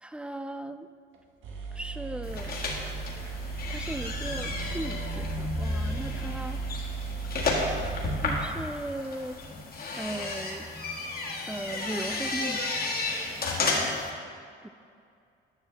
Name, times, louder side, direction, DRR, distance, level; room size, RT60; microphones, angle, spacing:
voice 1, 0.0-0.9 1.7-2.6 3.7-6.6 8.2-9.4 9.9-10.7 11.5-12.7 14.6-14.7, right 1 dB, 5° right, 10 dB, 0.3 m, -37 dB
sound 1, 1.1-1.2 1.4-9.3, right 5 dB, 80° right, 1.3 m, -36 dB
sound 2, 2.2-14.1, left 3 dB, 50° left, 1.5 m, -32 dB
10.0 x 6.2 x 3.4 m, 2.3 s
cardioid pair, 90°, 20 cm